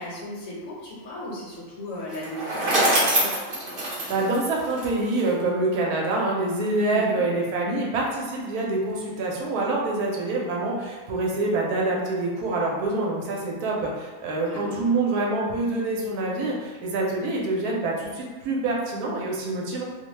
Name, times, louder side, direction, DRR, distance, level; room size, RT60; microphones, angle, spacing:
voice 1, 0.0-3.3 6.9-7.2 14.3-14.8, left 1 dB, 65° left, -5 dB, 1.1 m, -36 dB
Bicycle, 2.1-5.3, right 1 dB, 50° right, 0.8 m, -24 dB
voice 2, 4.1-19.8, right 2 dB, 80° right, -2 dB, 1.1 m, -26 dB
2.7 x 2.1 x 3.0 m, 1.4 s
omnidirectional pair, 1.6 m